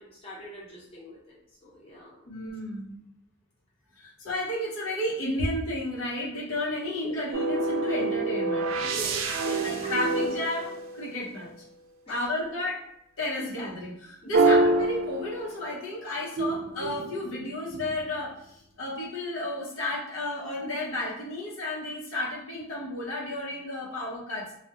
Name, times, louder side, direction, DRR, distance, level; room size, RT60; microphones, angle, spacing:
voice 1, 0.0-1.4 1.6-2.3 8.8-9.9 10.2-10.4 12.4-12.5 14.2-14.5, equal, 30° left, -6 dB, 0.8 m, -43 dB
voice 2, 2.3-3.0 4.0-8.7 9.6-11.5 12.1-12.8 13.2-24.5, left 1 dB, 85° left, -4 dB, 0.6 m, -32 dB
sound 1, 7.3-11.5 14.3-15.8 16.4-18.1, right 2 dB, 75° right, 0.3 m, -27 dB
2.3 x 2.0 x 2.7 m, 0.75 s
head